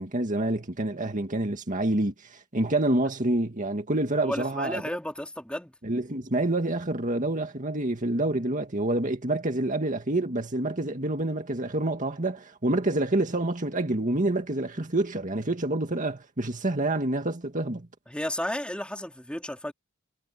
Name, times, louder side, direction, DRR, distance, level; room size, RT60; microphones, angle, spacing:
voice 1, 0.0-4.8 5.8-17.9, right 2 dB, 40° right, 2.0 m, -27 dB
voice 2, 4.2-5.7 18.1-19.7, left 1 dB, 5° left, 3.1 m, -33 dB
head